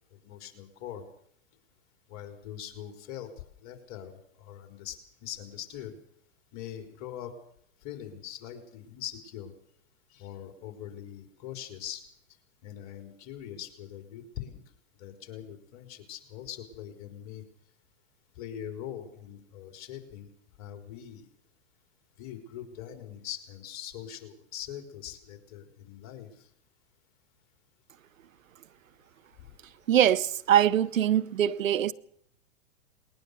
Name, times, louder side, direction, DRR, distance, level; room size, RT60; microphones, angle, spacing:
voice 1, 0.2-1.0 2.1-3.3 3.6-4.1 4.4-5.0 5.2-5.9 6.5-7.3 7.8-9.5 10.1-12.0 12.6-14.6 15.0-17.4 18.4-20.3 20.6-21.2 22.2-26.3, left 10 dB, 45° left, 4.2 m, -42 dB
voice 2, 29.9-31.9, right 10 dB, 80° right, 0.9 m, -23 dB
20.5 x 19.0 x 6.7 m
hypercardioid pair, 115°, 39 cm